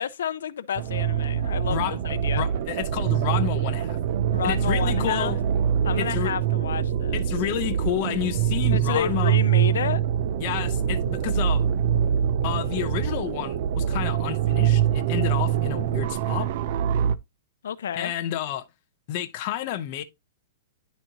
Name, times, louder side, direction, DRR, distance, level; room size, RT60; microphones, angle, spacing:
voice 1, 0.0-2.5 4.3-5.3 5.8-7.2 8.7-10.0 17.6-18.1, left 8 dB, 85° left, 0.6 m, -30 dB
sound 1, 0.8-17.2, right 9 dB, 40° right, 0.4 m, -24 dB
voice 2, 2.4-4.0 4.4-5.4 6.0-6.3 7.1-9.4 10.4-11.7 12.4-16.5 17.9-18.7 19.1-20.0, left 12 dB, 35° left, 0.7 m, -30 dB
10.5 x 4.1 x 2.9 m
supercardioid pair, 175°, 0 cm